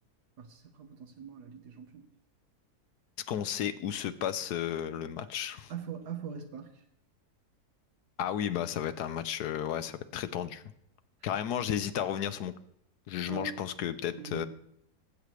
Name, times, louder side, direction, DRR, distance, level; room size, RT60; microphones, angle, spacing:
voice 1, 0.4-2.1 5.2-5.3 5.7-6.8 13.2-13.6 14.1-14.5, right 7 dB, 85° right, 3 dB, 1.6 m, -42 dB
voice 2, 3.3-5.7 8.2-10.6 11.2-12.5 13.1-14.5, left 10 dB, 80° left, 11 dB, 1.3 m, -33 dB
19.0 x 8.3 x 3.1 m, 0.74 s
omnidirectional pair, 1.7 m